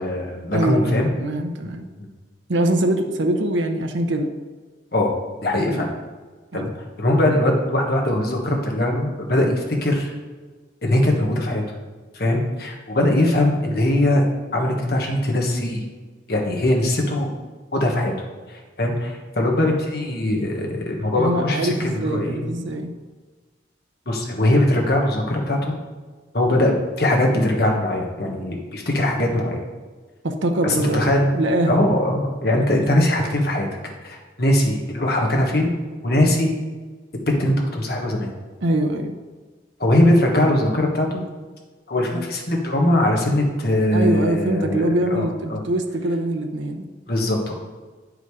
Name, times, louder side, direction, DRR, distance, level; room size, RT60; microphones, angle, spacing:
voice 1, 0.0-1.1 4.9-5.1 5.4-5.9 6.5-10.1 10.8-11.6 12.1-14.2 14.5-15.8 16.3-17.3 17.7-18.1 18.5-21.7 22.0-22.4 24.1-25.7 26.3-29.6 30.6-31.4 31.7-33.7 34.0-35.7 36.0-36.6 37.4-38.3 39.8-41.2 41.9-45.6 47.1-47.5, left 1 dB, 55° left, 0 dB, 1.4 m, -21 dB
voice 2, 0.5-1.9 2.5-4.3 5.7-5.8 6.5-6.7 21.2-22.9 30.2-31.8 38.6-39.2 43.9-46.9, right 1 dB, 80° right, 5 dB, 0.8 m, -23 dB
9.2 x 5.1 x 4.8 m, 1.4 s
head